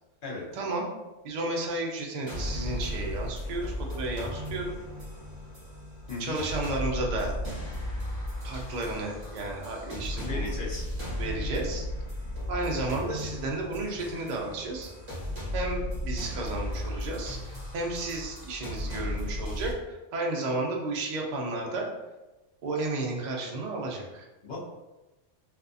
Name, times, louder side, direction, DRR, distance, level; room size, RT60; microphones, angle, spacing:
voice 1, 0.5-0.9 1.2-4.7 6.2-7.3 8.4-10.5 11.2-11.9 12.5-14.9 15.5-21.9 22.6-24.3, right 2 dB, 65° right, -1 dB, 0.4 m, -33 dB
sound 1, 2.3-19.7, left 1 dB, 25° right, 0.8 m, -35 dB
voice 2, 6.1-6.4 10.2-10.8 24.4-24.6, left 3 dB, 50° left, -5 dB, 0.7 m, -36 dB
2.6 x 2.4 x 2.4 m, 1.1 s
omnidirectional pair, 1.3 m